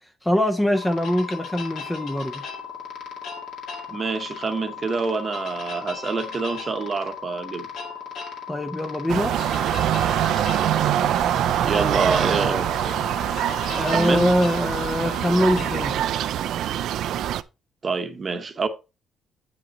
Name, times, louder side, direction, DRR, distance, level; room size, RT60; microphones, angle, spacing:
voice 1, 0.2-2.4 8.5-9.3 11.7-12.6 13.7-15.9, equal, 5° left, 0.5 m, -23 dB
sound 1, 0.7-16.0, left 6 dB, 70° left, 2.0 m, -36 dB
voice 2, 3.9-7.7 11.6-13.0 13.9-14.3 17.8-18.7, right 4 dB, 25° right, 0.8 m, -26 dB
sound 2, 9.1-17.4, right 11 dB, 70° right, 0.4 m, -24 dB
8.8 x 5.1 x 4.0 m
cardioid pair, 180°, 0 cm